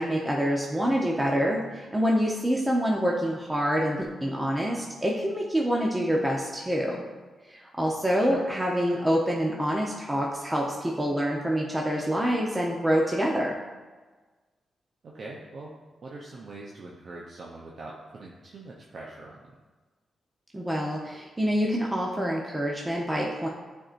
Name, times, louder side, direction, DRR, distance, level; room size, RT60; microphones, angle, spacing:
voice 1, 0.0-7.0 7.5-13.5 20.5-23.5, equal, 15° right, -2 dB, 0.9 m, -26 dB
voice 2, 15.0-15.7 16.0-19.5, right 2 dB, 60° right, -3 dB, 0.8 m, -43 dB
8.6 x 4.5 x 2.6 m, 1.3 s
supercardioid pair, 50°, 0 cm